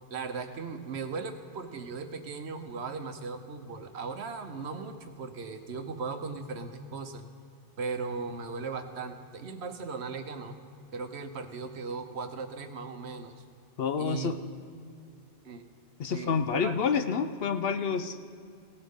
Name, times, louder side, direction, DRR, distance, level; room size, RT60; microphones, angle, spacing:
voice 1, 0.1-7.2 7.8-10.6 10.9-13.3 14.0-14.3 15.4-15.6 16.0-16.8, right 4 dB, 70° right, 7 dB, 1.1 m, -37 dB
voice 2, 13.8-14.4 16.0-18.2, left 6 dB, 65° left, 9 dB, 0.8 m, -28 dB
17.0 x 13.0 x 3.6 m, 2.4 s
omnidirectional pair, 1.2 m